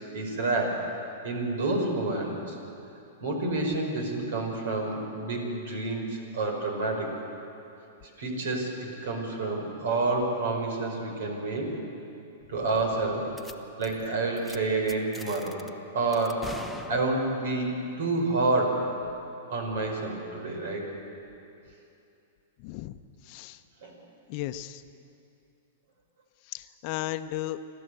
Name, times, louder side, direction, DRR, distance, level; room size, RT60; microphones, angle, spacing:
voice 1, 0.1-0.8 1.2-2.6 3.2-7.1 8.2-11.8 12.5-13.3 13.8-15.6 15.9-16.5 16.9-18.9 19.5-21.0 23.8-24.0, right 2 dB, 70° right, 3 dB, 5.4 m, -29 dB
sound 1, 13.4-13.5 13.8-14.1 14.4-14.6 14.9-15.7 16.1-17.5, left 1 dB, ahead, 1.1 m, -43 dB
voice 2, 22.6-23.0 23.3-23.6 24.3-24.8 26.5-27.6, left 14 dB, 50° left, 10 dB, 0.8 m, -35 dB
28.0 x 12.5 x 8.0 m, 2.7 s
hypercardioid pair, 125°, 0 cm